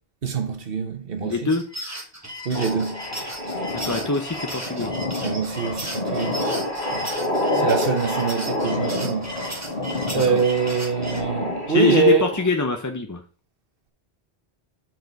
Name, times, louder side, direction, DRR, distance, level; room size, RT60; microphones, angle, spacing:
voice 1, 0.2-1.5 2.4-3.1 5.2-6.4 6.9-7.1 7.5-9.7 10.1-12.3, right 5 dB, 60° right, 1.3 m, -24 dB
voice 2, 1.3-1.6 3.7-4.9 7.5-7.7 10.1-10.2 11.7-13.2, left 4 dB, 20° left, 0.5 m, -24 dB
sound 1, 1.5-11.2, right 1 dB, 15° right, 1.5 m, -36 dB
sound 2, 2.5-12.5, left 1 dB, 45° left, 2.3 m, -28 dB
6.5 x 4.8 x 4.7 m
omnidirectional pair, 1.1 m